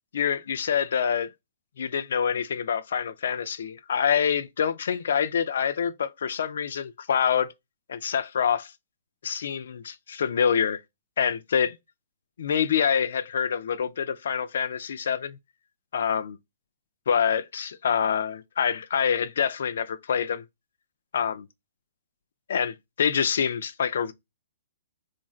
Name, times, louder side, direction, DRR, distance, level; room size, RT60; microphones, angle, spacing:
voice 1, 0.1-1.3 1.8-7.5 7.9-8.7 9.2-10.8 11.2-11.8 12.4-15.4 15.9-16.4 17.1-20.4 21.1-21.5 22.5-24.1, left 7 dB, 70° left, 0.4 m, -26 dB
3.1 x 2.5 x 2.3 m
hypercardioid pair, 140°, 0 cm